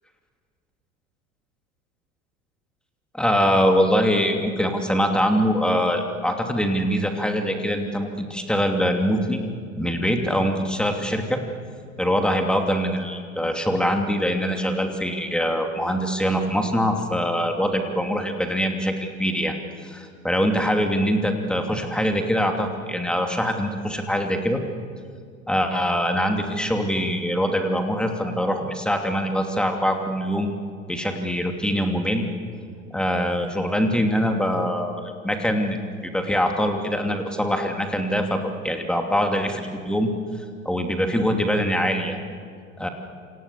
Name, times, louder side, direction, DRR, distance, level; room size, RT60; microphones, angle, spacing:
voice 1, 3.1-9.4 9.8-11.4 12.0-19.6 19.8-24.6 25.5-30.6 30.9-32.2 32.9-40.1 40.6-42.2 42.8-42.9, equal, ahead, 4 dB, 2.8 m, -23 dB
28.0 x 26.5 x 6.9 m, 2.1 s
figure-of-eight pair, 80°, 40 cm